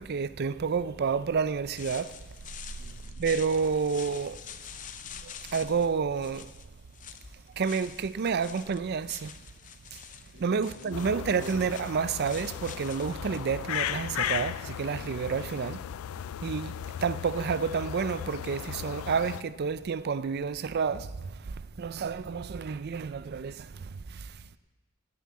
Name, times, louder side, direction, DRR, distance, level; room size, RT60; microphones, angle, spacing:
voice 1, 0.0-2.1 3.2-4.4 5.2-6.5 7.6-9.3 10.4-15.8 16.4-16.7 17.0-24.3, right 5 dB, 50° right, 0.4 m, -30 dB
sound 1, 1.7-13.2, left 8 dB, 40° left, 0.6 m, -47 dB
voice 2, 2.7-3.0 10.3-11.5 24.5-24.6, left 2 dB, 65° right, 5.6 m, -51 dB
sound 2, 10.9-19.4, left 10 dB, 85° left, 0.3 m, -36 dB
9.8 x 9.7 x 8.5 m
head